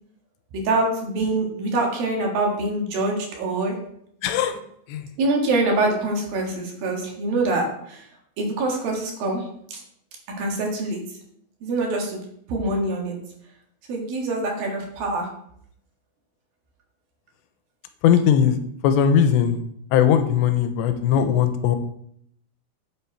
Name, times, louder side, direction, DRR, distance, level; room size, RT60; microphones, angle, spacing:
voice 1, 0.5-3.7 5.2-8.0 8.4-9.5 9.7-9.8 10.4-11.0 11.6-12.2 12.5-13.2 13.9-15.3, right 2 dB, 60° right, 0 dB, 3.3 m, -24 dB
voice 2, 4.2-4.6 4.9-5.1 18.0-18.6 18.8-19.6 19.9-21.8, left 8 dB, 90° left, 9 dB, 3.0 m, -19 dB
8.7 x 7.1 x 4.5 m, 0.69 s
omnidirectional pair, 5.0 m